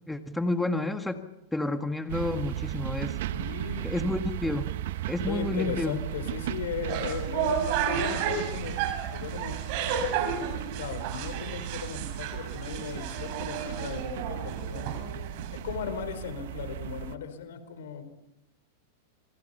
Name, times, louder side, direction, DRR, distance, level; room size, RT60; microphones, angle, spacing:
voice 1, 0.1-1.2 1.5-3.2 3.8-4.7 5.1-6.0, left 2 dB, 5° left, 6 dB, 1.7 m, -30 dB
sound 1, 2.1-17.1, right 13 dB, 70° right, 1.2 m, -36 dB
voice 2, 3.3-3.9 5.3-8.8 9.1-9.6 10.1-14.9 15.5-18.0, left 6 dB, 75° left, 10 dB, 4.5 m, -37 dB
sound 2, 6.7-15.8, right 6 dB, 55° right, 6.8 m, -32 dB
27.0 x 26.5 x 5.6 m, 0.90 s
hypercardioid pair, 120°, 0 cm